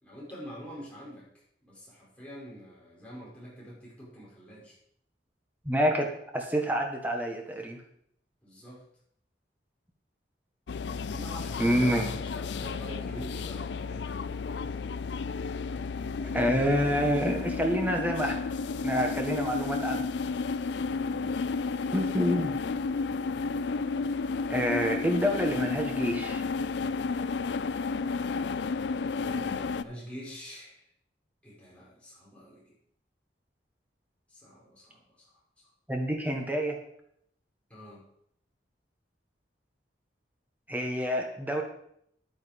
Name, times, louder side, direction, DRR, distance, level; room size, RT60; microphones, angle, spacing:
voice 1, 0.0-1.3 1.6-4.8 8.4-8.8 11.1-14.0 21.0-21.4 21.8-22.3 29.0-30.8 31.4-32.7 34.3-35.3 37.7-38.0, equal, 5° left, -7 dB, 5.2 m, -45 dB
voice 2, 5.6-7.8 11.6-12.1 16.3-18.4 18.8-20.0 21.9-22.5 24.5-26.4 35.9-36.8 40.7-41.6, equal, 10° right, 1 dB, 1.3 m, -27 dB
sound 1, 10.7-29.8, left 4 dB, 75° left, 0.5 m, -32 dB
11.0 x 9.1 x 5.1 m, 0.70 s
head